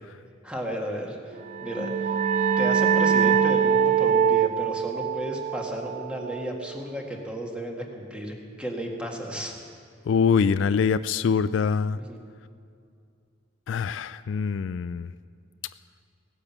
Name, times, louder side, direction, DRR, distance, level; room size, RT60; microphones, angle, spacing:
voice 1, 0.4-1.2 1.6-2.3 2.6-9.6 12.0-12.2, equal, 5° right, 0 dB, 1.8 m, -33 dB
sound 1, 1.4-6.8, right 7 dB, 45° right, 0.5 m, -24 dB
voice 2, 10.1-12.0 13.7-15.1, left 6 dB, 70° left, 14 dB, 0.3 m, -24 dB
17.5 x 9.9 x 7.3 m, 2.4 s
head